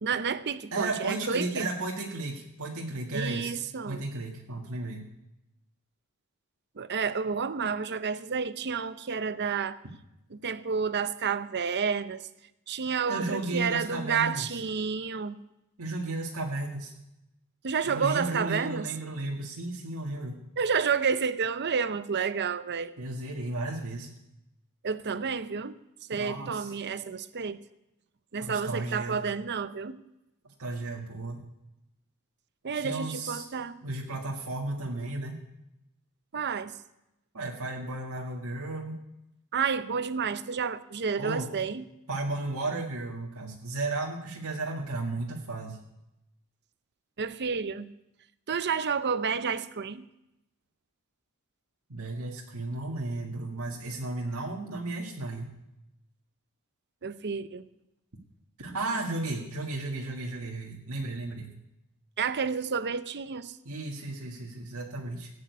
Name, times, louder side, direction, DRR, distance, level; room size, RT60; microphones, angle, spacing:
voice 1, 0.0-1.7 3.1-4.0 6.8-9.8 10.3-12.3 12.7-15.4 17.6-18.9 20.6-22.9 24.8-25.8 26.1-27.6 28.3-30.0 32.6-33.8 36.3-36.7 39.5-41.9 47.2-47.9 48.5-50.1 57.0-57.7 62.2-63.6, right 6 dB, 50° right, 13 dB, 0.7 m, -30 dB
voice 2, 0.7-3.5 3.8-5.1 13.1-14.6 15.8-16.9 17.8-20.4 23.0-24.1 26.2-26.7 28.4-29.2 30.4-31.4 32.7-33.5 33.8-35.4 37.3-39.0 41.2-41.5 42.1-45.8 51.9-55.5 58.6-61.5 63.7-65.3, right 2 dB, 75° right, -1 dB, 1.9 m, -34 dB
16.5 x 8.7 x 8.3 m, 0.90 s
head